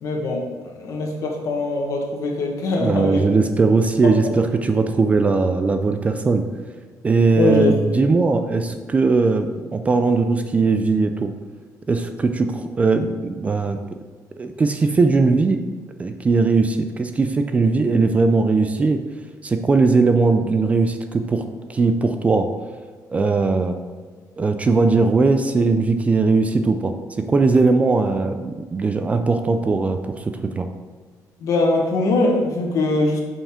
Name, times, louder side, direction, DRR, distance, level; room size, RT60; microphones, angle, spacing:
voice 1, 0.0-0.5 0.8-3.3 4.0-4.3 7.3-8.0 31.4-33.2, left 2 dB, 55° left, 1 dB, 1.3 m, -22 dB
voice 2, 2.8-6.5 7.0-11.3 11.9-13.8 14.4-15.6 16.0-19.0 19.4-21.4 21.7-22.5 23.1-23.8 24.4-26.9 27.3-30.7, right 4 dB, 20° right, 7 dB, 0.3 m, -19 dB
7.0 x 5.6 x 3.6 m, 1.5 s
cardioid pair, 165°, 7 cm